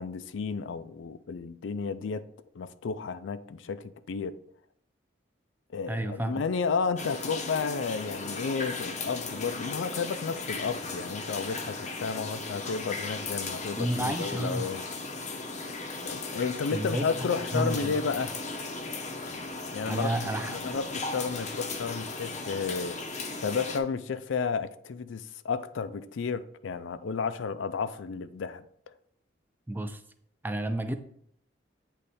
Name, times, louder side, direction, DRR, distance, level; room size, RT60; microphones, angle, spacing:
voice 1, 0.0-2.2 2.5-4.3 5.7-14.8 16.1-18.3 19.7-20.1 20.4-23.0 23.4-28.6, left 5 dB, 85° left, 0.4 m, -32 dB
voice 2, 5.9-6.4 13.8-14.7 16.7-17.3 17.5-17.9 19.8-20.8 29.7-30.0 30.4-31.0, right 1 dB, 10° right, 0.4 m, -31 dB
sound 1, 7.0-23.8, left 3 dB, 40° left, 0.6 m, -36 dB
8.2 x 3.2 x 4.1 m
head